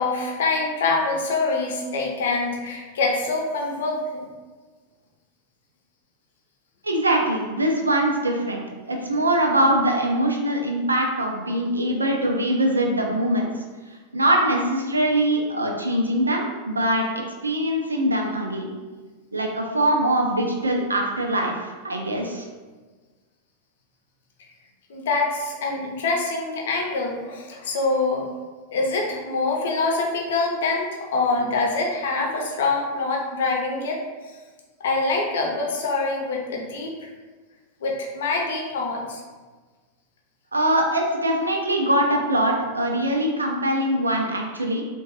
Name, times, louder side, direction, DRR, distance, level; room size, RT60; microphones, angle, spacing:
voice 1, 0.0-4.2 24.9-28.3 28.7-34.0 34.8-37.1 37.8-39.2, left 3 dB, 60° left, 0 dB, 0.6 m, -25 dB
voice 2, 6.8-13.5 14.1-18.7 19.3-22.4 40.5-44.8, right 1 dB, 80° right, 1 dB, 0.5 m, -22 dB
3.6 x 2.2 x 2.9 m, 1.4 s
figure-of-eight pair, 90°, 0 cm